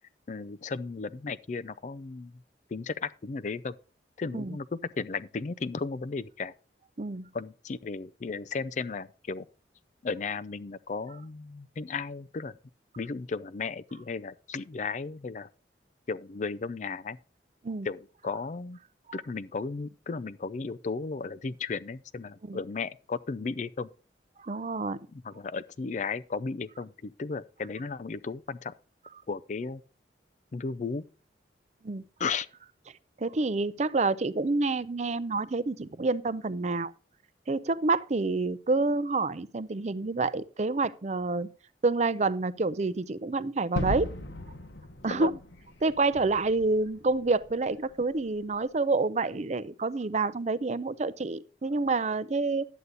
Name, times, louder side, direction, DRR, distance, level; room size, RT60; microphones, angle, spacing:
voice 1, 0.3-2.3 2.7-3.7 4.2-4.7 5.0-6.5 7.3-9.5 10.0-12.5 13.0-15.5 16.1-17.2 17.8-18.8 19.1-23.9 25.2-28.7 29.3-29.8 30.5-31.0 32.2-32.5 45.1-45.4, left 4 dB, 45° left, 0.4 m, -35 dB
voice 2, 7.0-7.3 17.6-17.9 19.1-19.2 22.5-22.6 24.4-25.0 31.8-32.1 33.2-36.9 37.5-41.5 41.8-44.1 45.0-45.3 45.8-52.7, right 3 dB, 40° right, 0.5 m, -28 dB
Gunshot gunfire / Fireworks / Boom, 43.8-48.6, left 1 dB, 80° left, 1.2 m, -38 dB
11.0 x 8.3 x 4.0 m
head